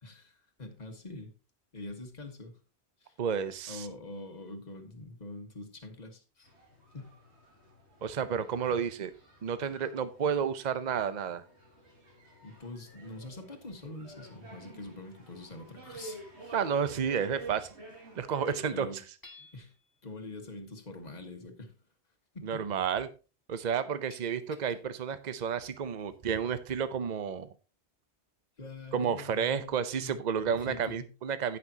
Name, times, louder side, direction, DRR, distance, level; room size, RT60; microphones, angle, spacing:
voice 1, 0.0-1.3 1.7-2.6 3.0-3.2 3.7-6.5 6.9-7.2 12.4-16.6 18.7-19.0 19.4-19.7 20.0-21.8 22.3-22.6 24.1-24.2 24.5-24.6 28.6-31.1, left 2 dB, 40° left, 4 dB, 1.7 m, -45 dB
voice 2, 3.2-3.9 8.0-9.1 9.4-11.4 16.5-17.7 18.2-18.9 22.4-23.1 23.5-27.5 28.9-31.6, right 7 dB, 45° right, 12 dB, 0.8 m, -31 dB
sound 1, 6.4-18.7, right 2 dB, 70° right, 2.9 m, -50 dB
Hammer / Chink clink, 19.2-20.0, left 2 dB, 20° left, 1.8 m, -53 dB
15.5 x 6.0 x 2.9 m, 0.32 s
omnidirectional pair, 1.2 m